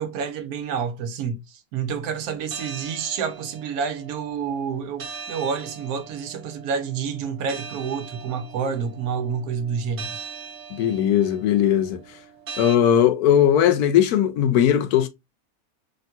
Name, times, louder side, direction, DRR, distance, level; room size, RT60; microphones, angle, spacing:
voice 1, 0.0-10.2, right 6 dB, 80° right, 1.1 m, -29 dB
sound 1, 2.5-12.8, right 5 dB, 50° right, 0.8 m, -41 dB
voice 2, 10.7-12.0 12.6-15.1, left 10 dB, 90° left, 1.1 m, -18 dB
3.5 x 2.2 x 2.7 m
omnidirectional pair, 1.6 m